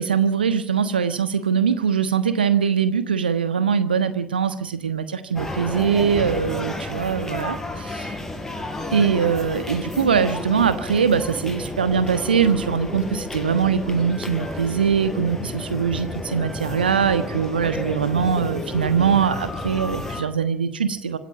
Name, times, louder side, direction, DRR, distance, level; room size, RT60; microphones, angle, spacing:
voice 1, 0.0-8.1 8.9-21.2, right 7 dB, 80° right, 11 dB, 1.3 m, -22 dB
sound 1, 5.3-20.2, left 2 dB, 10° left, 5.8 m, -31 dB
26.0 x 14.0 x 8.8 m, 0.64 s
figure-of-eight pair, 65°, 5 cm